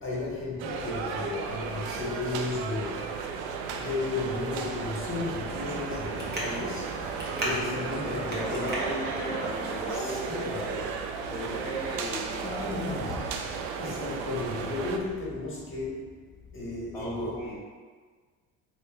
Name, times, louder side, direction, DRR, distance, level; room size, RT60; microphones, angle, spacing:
voice 1, 0.0-3.0 3.8-6.9 7.4-8.7 9.9-10.8 12.4-13.3 13.8-16.1 16.5-17.5, left 3 dB, 30° left, -4 dB, 1.3 m, -34 dB
sound 1, 0.6-15.0, right 5 dB, 70° right, 0.5 m, -35 dB
Traffic noise roadway noise, 4.6-9.9, right 1 dB, 25° right, 1.2 m, -37 dB
voice 2, 8.0-10.9 11.3-13.0 16.9-17.6, right 1 dB, 5° left, -9 dB, 0.9 m, -36 dB
3.1 x 3.1 x 3.4 m, 1.5 s
supercardioid pair, 85°, 40 cm